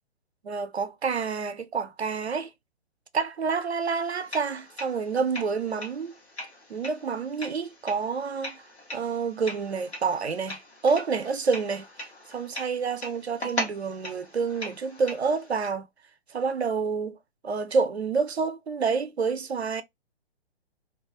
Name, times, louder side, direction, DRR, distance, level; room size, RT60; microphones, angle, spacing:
voice 1, 0.4-2.5 3.1-6.1 6.7-8.6 8.9-11.9 12.3-15.9 16.3-17.2 17.4-19.8, right 5 dB, 85° right, 0.5 m, -28 dB
sound 1, 3.8-15.7, left 1 dB, 85° left, 1.0 m, -40 dB
2.3 x 2.0 x 2.6 m
figure-of-eight pair, 125°, 32 cm